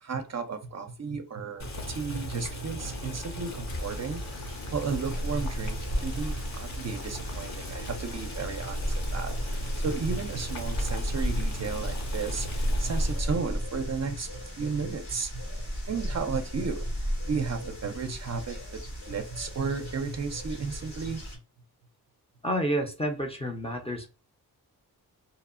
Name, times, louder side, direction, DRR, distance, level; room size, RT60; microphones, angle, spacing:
voice 1, 0.0-4.4 4.7-9.4 9.8-16.9 17.3-18.8 19.1-21.2, right 5 dB, 45° right, 0.5 m, -34 dB
Boiling, 1.6-13.4, equal, 45° left, 0.8 m, -38 dB
sound 1, 3.7-21.4, equal, 85° left, 1.4 m, -34 dB
voice 2, 22.4-24.1, equal, 15° left, 0.5 m, -29 dB
2.9 x 2.0 x 2.4 m
cardioid pair, 75°, 39 cm